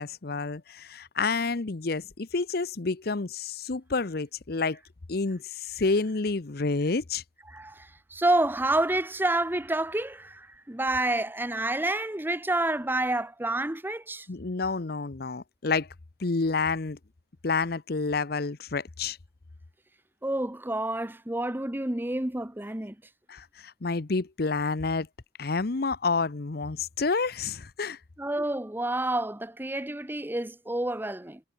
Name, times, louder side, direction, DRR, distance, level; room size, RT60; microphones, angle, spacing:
voice 1, 0.0-4.8 5.1-7.2 14.3-15.9 16.2-17.0 17.4-19.2 23.3-25.1 25.4-28.0, left 4 dB, 55° left, 0.8 m, -29 dB
voice 2, 7.5-14.3 20.2-23.0 28.2-31.4, right 1 dB, 10° right, 0.9 m, -29 dB
head